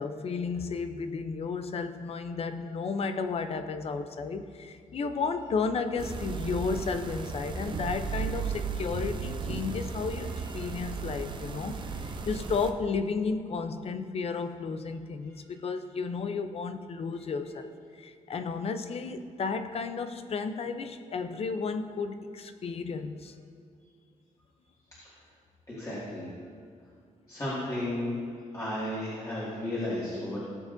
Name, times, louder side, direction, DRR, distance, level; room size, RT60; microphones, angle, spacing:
voice 1, 0.0-17.7 18.0-23.3, left 4 dB, 50° left, 9 dB, 0.6 m, -33 dB
sound 1, 6.0-12.7, right 5 dB, 35° right, 0.6 m, -35 dB
voice 2, 25.7-26.3 27.3-28.2 28.5-30.4, left 1 dB, 25° left, -10 dB, 2.1 m, -34 dB
16.5 x 7.3 x 2.6 m, 2.3 s
wide cardioid pair, 140°, 13 cm